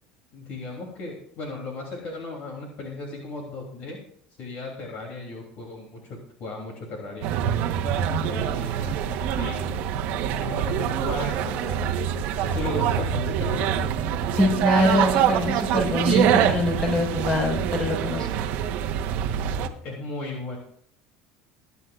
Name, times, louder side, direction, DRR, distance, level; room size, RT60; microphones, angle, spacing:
voice 1, 0.3-4.0 4.4-7.3 7.9-9.8 10.4-11.9 12.4-13.7 18.1-18.3 19.8-20.6, left 3 dB, 50° left, -1 dB, 3.1 m, -36 dB
sound 1, 7.2-19.7, right 9 dB, 65° right, 1.2 m, -25 dB
voice 2, 14.4-18.3, left 1 dB, 25° left, -1 dB, 4.7 m, -23 dB
22.0 x 9.7 x 2.5 m, 0.65 s
cardioid pair, 140°, 3 cm